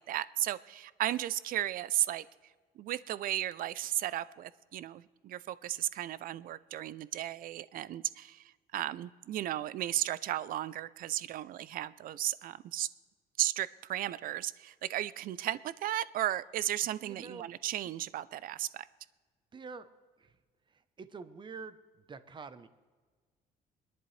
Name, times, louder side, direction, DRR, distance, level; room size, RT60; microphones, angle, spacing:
voice 1, 0.0-2.2 2.8-8.4 8.7-12.9 13.4-18.9, right 13 dB, 55° right, 17 dB, 0.5 m, -35 dB
voice 2, 17.0-17.5 17.8-17.9 19.5-19.9 20.2-20.3 21.0-21.8 22.1-22.7, right 4 dB, 30° right, 12 dB, 0.8 m, -46 dB
23.0 x 10.5 x 3.2 m, 1.4 s
cardioid pair, 110°, 17 cm